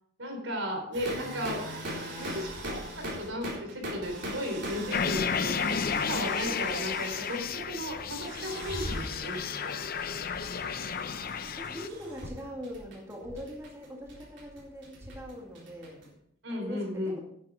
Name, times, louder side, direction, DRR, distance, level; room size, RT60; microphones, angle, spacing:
voice 1, 0.2-1.6 2.2-5.6 6.1-9.7 16.4-17.2, equal, 80° right, 3 dB, 3.9 m, -35 dB
sound 1, 0.9-16.1, right 1 dB, 65° right, 3.9 m, -40 dB
sound 2, 4.9-11.9, left 6 dB, 50° left, 0.6 m, -32 dB
voice 2, 11.5-16.1 16.5-17.2, equal, 15° right, -1 dB, 2.1 m, -42 dB
10.5 x 9.5 x 4.8 m, 0.72 s
head